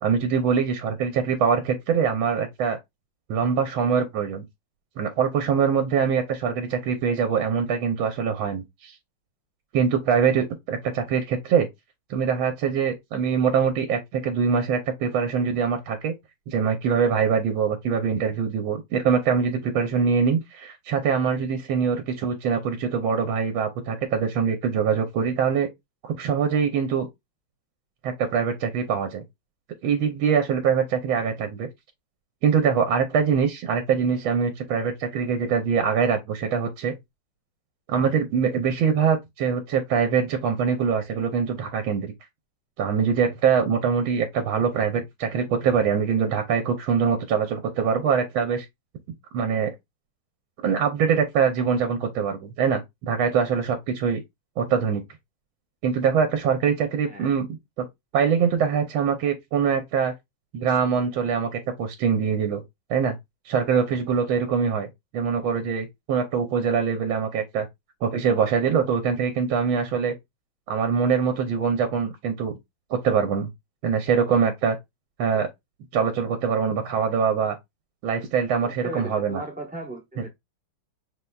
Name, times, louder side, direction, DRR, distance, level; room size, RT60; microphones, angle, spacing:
voice 1, 0.0-2.8 3.3-4.4 5.0-8.9 9.7-11.7 12.1-16.1 16.5-25.7 26.0-27.1 28.0-29.2 29.8-31.7 32.4-37.0 37.9-42.1 42.8-48.6 49.3-49.7 50.6-54.2 54.6-55.0 55.8-57.5 57.8-57.9 58.1-60.1 60.5-62.6 62.9-63.1 63.5-67.7 68.0-70.1 70.7-72.5 72.9-73.5 73.8-74.8 75.2-75.5 75.9-77.6 78.0-79.4, right 6 dB, 75° right, 1.5 m, -23 dB
voice 2, 78.6-80.3, right 2 dB, 10° right, 0.6 m, -36 dB
5.7 x 3.2 x 2.3 m
omnidirectional pair, 2.3 m